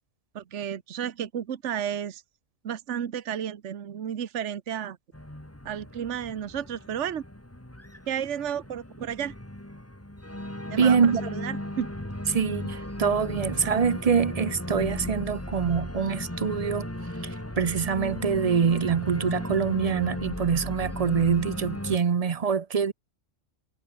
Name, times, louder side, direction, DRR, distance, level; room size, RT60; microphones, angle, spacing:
voice 1, 0.3-2.2 2.6-5.0 5.6-7.2 8.1-9.3 10.7-11.9, right 9 dB, 65° right, 1.3 m, -32 dB
Organ, 5.1-22.0, left 1 dB, 10° left, 2.7 m, -36 dB
voice 2, 10.8-11.2 12.3-16.9 17.2-22.9, right 6 dB, 40° right, 0.6 m, -25 dB
omnidirectional pair, 1.3 m